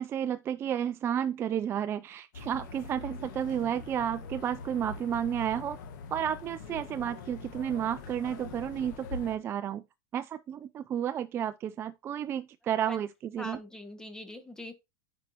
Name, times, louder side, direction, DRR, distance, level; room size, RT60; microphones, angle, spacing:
voice 1, 0.0-5.8 6.1-9.8 10.1-13.6, right 9 dB, 25° right, 0.3 m, -32 dB
sound 1, 2.3-9.4, left 4 dB, 70° left, 1.7 m, -43 dB
voice 2, 13.4-14.7, left 1 dB, 5° left, 1.0 m, -42 dB
9.4 x 5.4 x 2.9 m
supercardioid pair, 145°, 10 cm